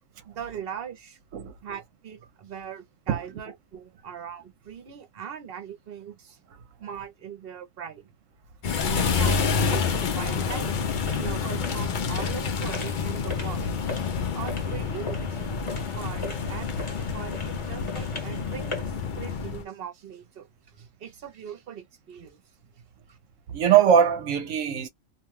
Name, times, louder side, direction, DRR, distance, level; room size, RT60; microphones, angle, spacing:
voice 1, 0.3-1.2 1.6-6.4 6.8-8.1 9.0-20.5 20.7-22.4 23.1-23.2, right 8 dB, 50° right, 0.9 m, -40 dB
sound 1, 8.6-19.6, left 5 dB, 55° left, 0.6 m, -28 dB
sound 2, 8.9-19.0, left 3 dB, 25° left, 0.9 m, -41 dB
voice 2, 23.5-24.9, right 8 dB, 75° right, 1.0 m, -21 dB
2.6 x 2.3 x 3.1 m
omnidirectional pair, 1.4 m